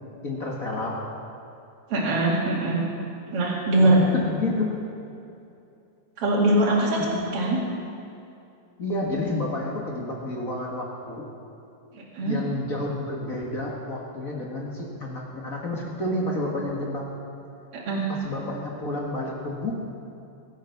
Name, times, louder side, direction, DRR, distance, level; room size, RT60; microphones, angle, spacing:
voice 1, 0.2-1.0 3.8-4.8 7.0-7.3 8.8-11.2 12.2-17.1 18.1-19.7, left 2 dB, 35° left, -2 dB, 1.6 m, -30 dB
voice 2, 1.9-2.8 3.3-4.0 6.2-7.0 7.3-7.6 11.9-12.4 17.9-18.1, right 1 dB, 50° right, -5 dB, 3.1 m, -22 dB
22.5 x 8.5 x 5.9 m, 2.7 s
omnidirectional pair, 3.4 m